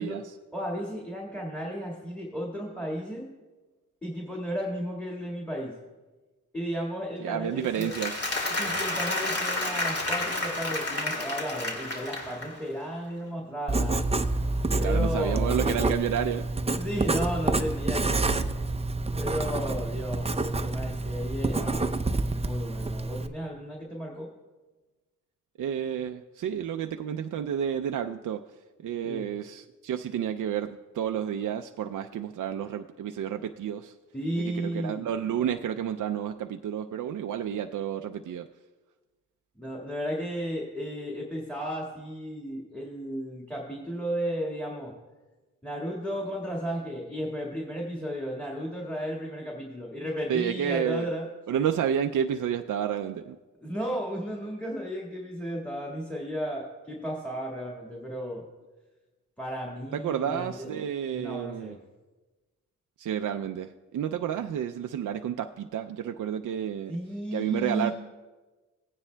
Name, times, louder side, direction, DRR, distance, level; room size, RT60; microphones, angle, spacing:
voice 1, 0.0-0.3 7.2-8.2 14.8-16.5 25.6-28.4 28.8-34.0 34.4-38.5 50.3-51.1 51.5-53.4 59.9-61.8 63.0-67.0 67.3-67.9, right 9 dB, 70° right, 5 dB, 0.4 m, -30 dB
voice 2, 0.5-3.3 4.0-5.8 6.5-7.9 8.5-14.0 14.8-15.5 16.7-18.4 19.2-21.9 22.1-24.3 29.0-29.3 34.1-35.0 39.6-44.9 45.6-51.3 53.6-58.5 59.4-60.7 61.1-61.8 66.9-67.9, equal, 5° left, -2 dB, 1.8 m, -34 dB
Applause, 7.6-12.7, left 2 dB, 50° left, 2.4 m, -30 dB
Writing, 13.7-23.3, right 2 dB, 20° right, 0.5 m, -28 dB
16.5 x 9.7 x 2.2 m, 1.2 s
cardioid pair, 65°, 32 cm